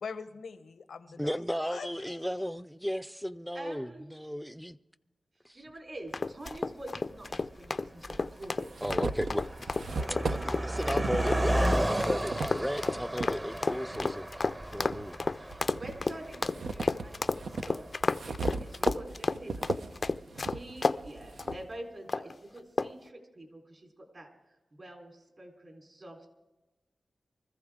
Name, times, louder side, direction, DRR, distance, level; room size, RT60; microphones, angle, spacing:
voice 1, 0.0-2.2, left 5 dB, 90° left, 0.8 m, -43 dB
voice 2, 1.2-4.8 5.4-5.5 8.8-9.7 10.6-14.3 14.7-15.2, equal, ahead, 0.5 m, -34 dB
voice 3, 3.5-4.1 5.5-8.7 10.0-11.5 15.3-17.8 18.3-19.8 20.4-24.3 24.7-26.2, right 1 dB, 50° right, 4.0 m, -46 dB
sound 1, 6.1-21.0 21.4-21.6 22.1-22.4 22.8-23.1, left 3 dB, 50° left, 0.4 m, -31 dB
Car passing by, 6.5-6.6 7.3-7.6 7.9-18.3, right 1 dB, 25° right, 1.0 m, -34 dB
sound 2, 6.5-6.6 7.6-7.7 8.2-13.3 13.9-15.1 15.5-21.6, right 3 dB, 80° right, 0.7 m, -38 dB
24.0 x 14.5 x 3.7 m
cardioid pair, 55°, 0 cm